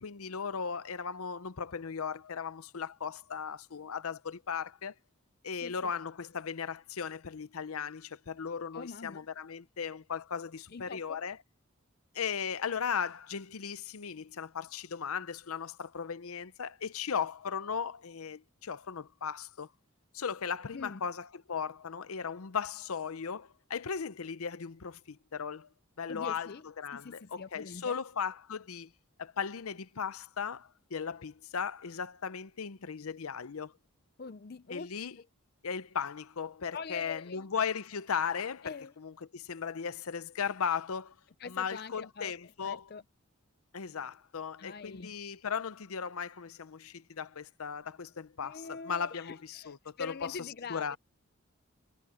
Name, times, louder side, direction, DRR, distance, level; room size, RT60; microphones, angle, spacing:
voice 1, 0.0-4.9 5.4-11.4 12.1-19.7 20.1-25.7 26.0-26.5 26.8-28.9 29.2-33.7 34.7-35.2 35.6-41.1 41.5-42.9 43.7-50.4 50.7-51.0, left 6 dB, 85° left, 0.7 m, -37 dB
voice 2, 8.7-9.2 10.7-11.2 20.7-21.0 26.1-26.6 26.9-28.0 34.2-34.9 35.2-35.3 36.7-37.5 38.6-38.9 41.4-42.3 42.6-43.0 44.6-45.2 48.4-51.0, left 4 dB, 45° left, 0.5 m, -43 dB
head